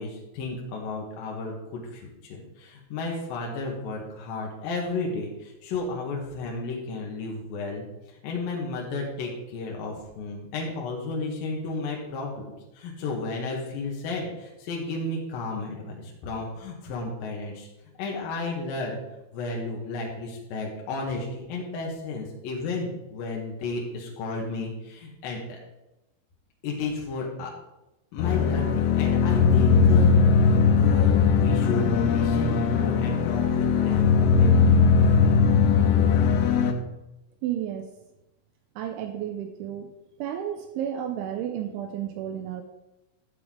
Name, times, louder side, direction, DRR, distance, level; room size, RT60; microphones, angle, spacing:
voice 1, 0.0-7.8 8.2-17.7 18.0-19.0 19.3-25.6 26.6-27.5 28.1-30.1 30.8-34.8, left 3 dB, 70° left, -1 dB, 2.3 m, -33 dB
sound 1, 28.2-36.7, left 5 dB, 85° left, 3.5 m, -20 dB
voice 2, 37.4-37.9 38.8-39.9 40.2-42.6, right 10 dB, 85° right, 6 dB, 2.8 m, -32 dB
12.0 x 7.9 x 3.7 m, 0.95 s
omnidirectional pair, 5.9 m